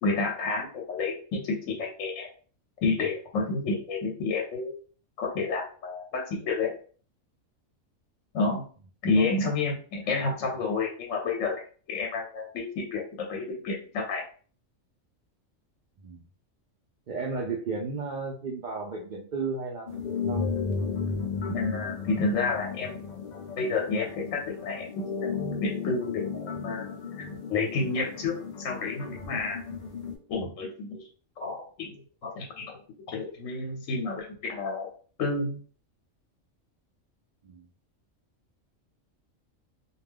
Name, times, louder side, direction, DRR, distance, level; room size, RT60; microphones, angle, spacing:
voice 1, 0.0-2.3 2.8-4.8 5.2-6.7 8.3-8.6 9.0-11.6 11.9-14.2 21.5-23.0 23.6-25.3 25.6-26.9 27.2-27.3 27.5-29.6 30.3-31.0 31.4-31.9 32.2-32.8 33.1-34.9 35.2-35.6, left 3 dB, 80° left, 0 dB, 1.0 m, -30 dB
voice 2, 17.1-20.0 20.3-20.5 37.4-37.7, right 4 dB, 80° right, -2 dB, 0.4 m, -34 dB
sound 1, 19.9-30.2, left 5 dB, 55° left, 0.5 m, -34 dB
2.3 x 2.2 x 3.3 m, 0.42 s
omnidirectional pair, 1.3 m